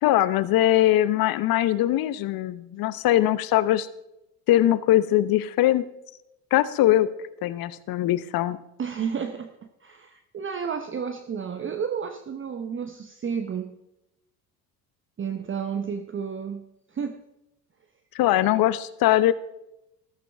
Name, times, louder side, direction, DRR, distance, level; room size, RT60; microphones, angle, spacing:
voice 1, 0.0-3.9 4.5-5.8 6.5-7.1 7.4-8.6 18.1-19.3, left 14 dB, 45° left, 0.9 m, -21 dB
voice 2, 8.8-9.5 9.8-13.8 15.2-16.7 16.9-17.2, right 6 dB, 25° right, 0.9 m, -31 dB
14.0 x 14.0 x 3.5 m
hypercardioid pair, 65°, 48 cm